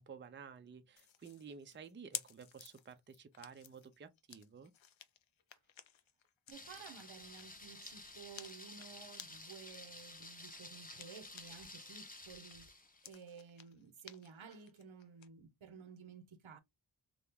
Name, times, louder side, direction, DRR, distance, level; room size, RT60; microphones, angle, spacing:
voice 1, 0.0-4.7, right 6 dB, 25° right, 0.4 m, -53 dB
sound 1, 1.0-11.8 12.1-15.3, left 9 dB, 75° left, 0.6 m, -54 dB
Thunder, 6.5-13.1, left 2 dB, 20° left, 0.6 m, -52 dB
voice 2, 6.5-12.7 13.0-16.6, right 6 dB, 85° right, 0.7 m, -54 dB
2.9 x 2.3 x 3.4 m
wide cardioid pair, 75°, 46 cm